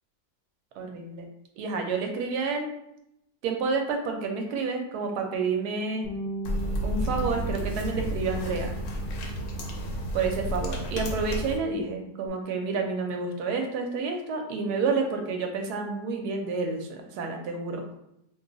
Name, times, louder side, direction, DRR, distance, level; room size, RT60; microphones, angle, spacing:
voice 1, 0.8-1.2 1.6-2.7 3.4-6.1 6.8-8.7 10.1-17.8, right 4 dB, 75° right, 3 dB, 1.1 m, -29 dB
Bass guitar, 6.0-10.8 11.1-12.3, right 4 dB, 85° left, 0.3 m, -40 dB
sound 1, 6.4-11.6, equal, 65° left, 0.8 m, -31 dB
2.8 x 2.3 x 3.8 m, 0.81 s
omnidirectional pair, 1.7 m